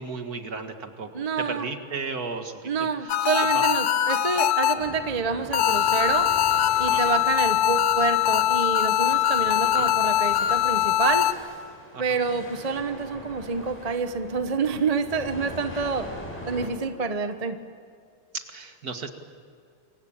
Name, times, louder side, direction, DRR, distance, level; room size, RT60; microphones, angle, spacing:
voice 1, 0.0-3.1 3.5-3.6 6.9-7.2 9.8-9.9 11.9-12.2 18.3-19.1, right 4 dB, 45° right, 7 dB, 2.2 m, -35 dB
voice 2, 1.1-1.7 2.6-6.3 6.8-11.3 12.0-16.1 16.5-17.6, right 5 dB, 25° right, 9 dB, 0.8 m, -27 dB
sound 1, 3.1-5.1 5.5-11.3, left 11 dB, 85° left, 1.9 m, -22 dB
sound 2, 4.8-16.7, equal, 5° left, 6.2 m, -42 dB
28.0 x 24.0 x 8.8 m, 2.3 s
omnidirectional pair, 2.4 m